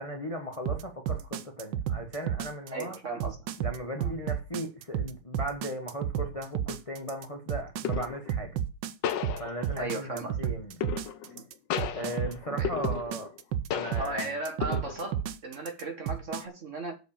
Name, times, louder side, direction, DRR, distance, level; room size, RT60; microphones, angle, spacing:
voice 1, 0.0-3.0 3.6-8.6 9.4-10.7 11.9-13.3 13.7-14.4, equal, 25° left, 0.9 m, -37 dB
sound 1, 0.7-16.4, right 9 dB, 70° right, 1.3 m, -32 dB
voice 2, 2.7-3.5 4.0-4.1 9.7-10.4 11.3-11.5 12.5-12.8 13.9-17.0, right 2 dB, 40° right, 1.6 m, -36 dB
sound 2, 6.3-6.5 7.8-8.3 9.0-9.9 10.8-11.4 11.7-13.4 13.7-14.3 14.6-15.2, left 9 dB, 65° left, 1.3 m, -34 dB
8.1 x 4.9 x 7.1 m
omnidirectional pair, 2.3 m